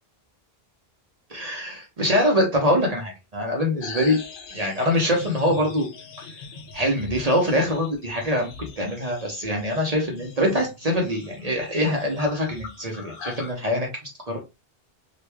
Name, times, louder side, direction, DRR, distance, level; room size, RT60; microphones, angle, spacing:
voice 1, 1.3-4.2 4.5-5.9 6.7-13.9 14.3-14.4, equal, 40° right, 0 dB, 0.8 m, -24 dB
sound 1, 3.8-13.5, left 4 dB, 60° left, 0.8 m, -41 dB
2.9 x 2.4 x 3.4 m, 0.27 s
omnidirectional pair, 1.0 m